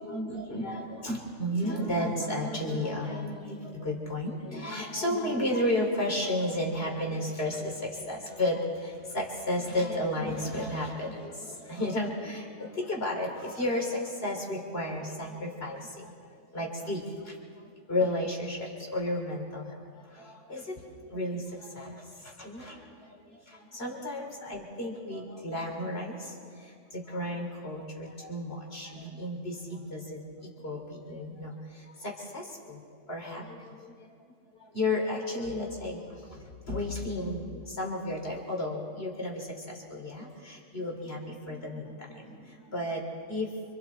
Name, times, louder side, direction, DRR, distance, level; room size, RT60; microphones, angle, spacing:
voice 1, 0.0-32.8 33.1-34.1 34.6-43.5, left 1 dB, 40° left, 0 dB, 3.9 m, -33 dB
29.5 x 26.0 x 4.4 m, 2.2 s
omnidirectional pair, 1.6 m